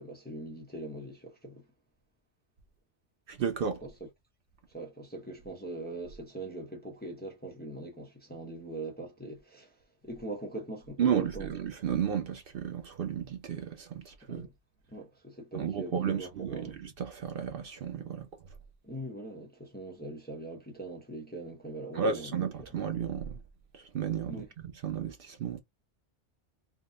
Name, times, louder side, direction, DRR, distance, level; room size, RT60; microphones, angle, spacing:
voice 1, 0.0-1.6 3.8-4.1 4.7-11.5 14.2-14.5 14.9-16.8 18.8-22.3 24.3-24.5, right 2 dB, 10° left, 0.6 m, -42 dB
voice 2, 3.3-3.8 11.0-14.5 15.5-18.3 21.9-23.4 23.7-24.4 24.8-25.6, right 7 dB, 60° right, 0.7 m, -33 dB
3.5 x 2.1 x 2.5 m
omnidirectional pair, 1.1 m